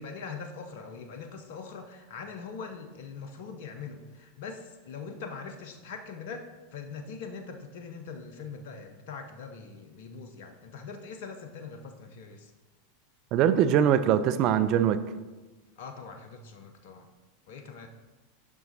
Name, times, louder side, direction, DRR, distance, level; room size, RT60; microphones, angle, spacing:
voice 1, 0.0-12.5 15.8-17.1 17.5-17.9, left 5 dB, 60° left, 6 dB, 0.7 m, -42 dB
voice 2, 13.3-15.0, right 9 dB, 45° right, 12 dB, 0.4 m, -22 dB
7.1 x 5.8 x 4.2 m, 1.2 s
figure-of-eight pair, 90°, 0 cm